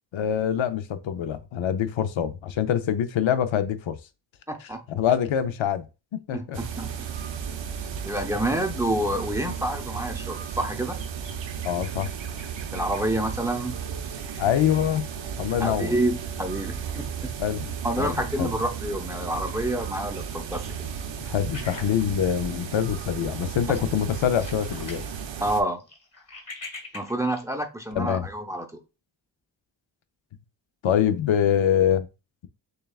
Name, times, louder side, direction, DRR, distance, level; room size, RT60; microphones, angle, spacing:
voice 1, 0.1-4.0 4.6-5.9 6.3-6.6 11.6-12.1 14.4-15.1 15.4-16.0 17.4-17.7 18.0-18.5 21.2-25.0 27.9-28.3 30.8-32.1, left 9 dB, 85° left, 0.6 m, -25 dB
voice 2, 4.5-4.8 6.3-7.0 8.1-11.0 12.7-13.8 15.6-17.3 17.8-20.8 25.4-25.8 26.9-28.7, right 1 dB, 5° right, 0.6 m, -28 dB
sound 1, 6.5-25.6, right 7 dB, 80° right, 0.7 m, -34 dB
sound 2, 21.5-22.9 23.2-23.4 23.7-25.1 25.4-27.4, left 3 dB, 35° left, 1.4 m, -42 dB
6.5 x 2.3 x 2.3 m
wide cardioid pair, 125°, 45 cm